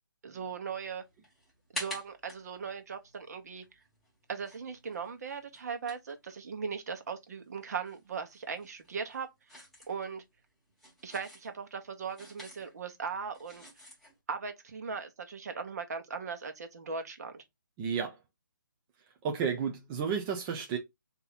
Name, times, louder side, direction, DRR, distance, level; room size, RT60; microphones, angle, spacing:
voice 1, 0.2-1.0 1.7-3.6 4.3-10.2 11.0-13.7 14.3-17.4, right 5 dB, 50° right, 1.1 m, -39 dB
sound 1, 0.8-7.1 7.4-14.2, equal, ahead, 1.2 m, -48 dB
voice 2, 17.8-18.2 19.2-20.8, right 6 dB, 15° right, 0.4 m, -32 dB
4.1 x 2.8 x 4.0 m
hypercardioid pair, 160°, 11 cm